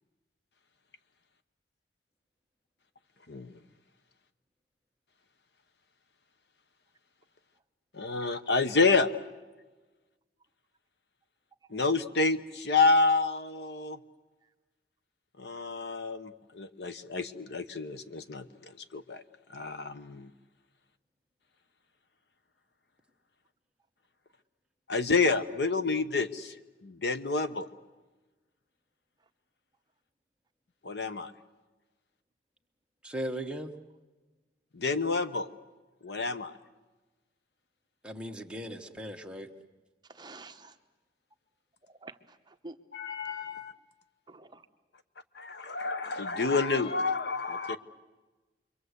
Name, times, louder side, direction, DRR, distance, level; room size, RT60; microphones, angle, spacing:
voice 1, 3.3-3.6 7.9-9.1 11.7-14.0 15.4-19.2 19.5-20.3 24.9-26.5 26.8-27.7 30.8-31.3 34.7-35.5 36.0-36.6 42.9-43.7 45.3-47.8, left 3 dB, 65° left, 1.1 m, -29 dB
voice 2, 33.0-33.7 38.0-39.5, right 1 dB, 5° right, 1.4 m, -37 dB
voice 3, 40.0-40.8 41.8-42.8 44.3-44.7, right 2 dB, 25° right, 1.0 m, -49 dB
28.0 x 23.5 x 8.2 m
head